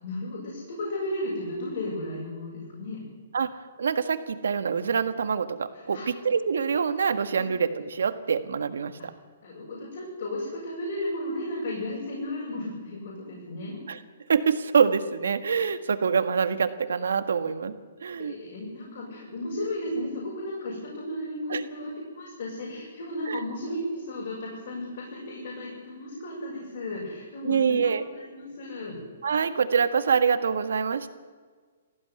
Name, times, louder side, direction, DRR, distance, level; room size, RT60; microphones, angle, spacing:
voice 1, 0.0-3.0 5.9-6.1 9.4-13.8 18.2-29.0, left 1 dB, 50° left, -4 dB, 6.8 m, -34 dB
voice 2, 3.3-9.1 13.9-14.0 14.3-17.7 18.0-18.3 21.5-21.6 23.3-23.4 27.4-28.0 29.2-31.1, right 6 dB, 90° right, 10 dB, 1.7 m, -25 dB
19.0 x 15.5 x 9.5 m, 1.5 s
hypercardioid pair, 175°, 0 cm